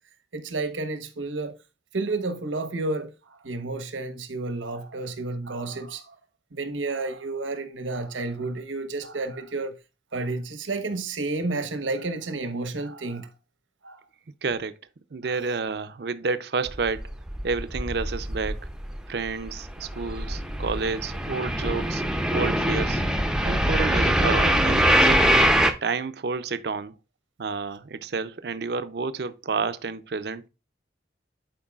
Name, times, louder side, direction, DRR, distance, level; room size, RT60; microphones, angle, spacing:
voice 1, 0.3-1.5 1.9-6.1 6.5-9.7 10.1-13.3 13.8-14.0 15.2-15.4, right 3 dB, 90° right, 1.1 m, -31 dB
voice 2, 14.4-14.7 15.1-17.1 17.4-18.7 19.1-22.0 22.3-23.0 23.4-25.4 25.8-27.0 27.4-30.5, right 4 dB, 55° right, 0.5 m, -30 dB
sound 1, 16.7-19.0 19.3-25.7, equal, 5° right, 0.5 m, -23 dB
11.0 x 4.6 x 2.3 m
head